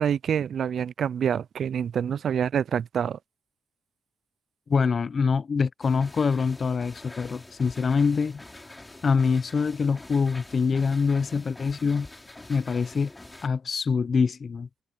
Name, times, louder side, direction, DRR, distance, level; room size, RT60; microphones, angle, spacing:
voice 1, 0.0-3.2, right 8 dB, 60° right, 0.3 m, -26 dB
voice 2, 4.7-8.4 9.0-12.1 12.5-13.1 13.4-14.7, left 5 dB, 40° left, 0.7 m, -24 dB
sound 1, 5.8-13.5, left 2 dB, 15° left, 2.8 m, -46 dB
cardioid pair, 90°, 0 cm